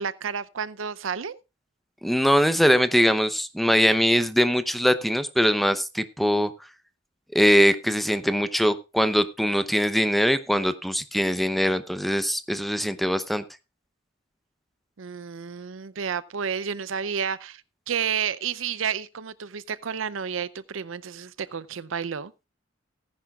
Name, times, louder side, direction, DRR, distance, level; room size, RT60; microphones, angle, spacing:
voice 1, 0.0-1.4 15.0-17.6 17.9-22.3, right 7 dB, 85° right, 0.6 m, -31 dB
voice 2, 2.0-6.5 7.3-13.4, equal, ahead, 0.7 m, -22 dB
18.0 x 10.5 x 2.4 m
head